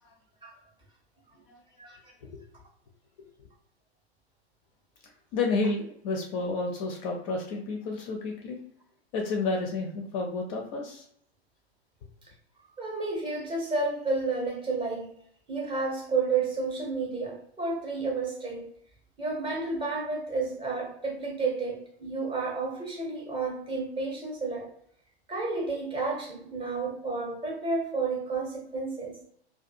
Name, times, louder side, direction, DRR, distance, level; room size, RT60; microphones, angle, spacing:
voice 1, 5.3-8.6 9.1-11.1, left 3 dB, 30° left, 1 dB, 0.5 m, -31 dB
voice 2, 12.8-15.1 15.5-18.7 19.2-24.7 25.3-29.2, right 3 dB, 15° right, -1 dB, 0.7 m, -31 dB
2.4 x 2.3 x 2.6 m, 0.68 s
figure-of-eight pair, 100°, 33 cm